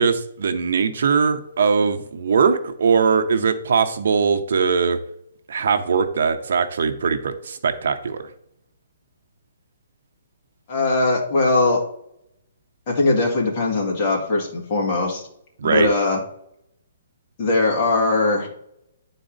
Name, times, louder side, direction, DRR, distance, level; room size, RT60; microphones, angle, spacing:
voice 1, 0.0-5.0 5.5-8.2 15.6-15.9, right 5 dB, 65° right, 9 dB, 0.8 m, -20 dB
voice 2, 10.7-11.8 12.9-15.2 15.6-16.2 17.4-18.5, left 2 dB, 30° left, -1 dB, 2.0 m, -20 dB
10.0 x 4.1 x 3.9 m, 0.75 s
hypercardioid pair, 170°, 0 cm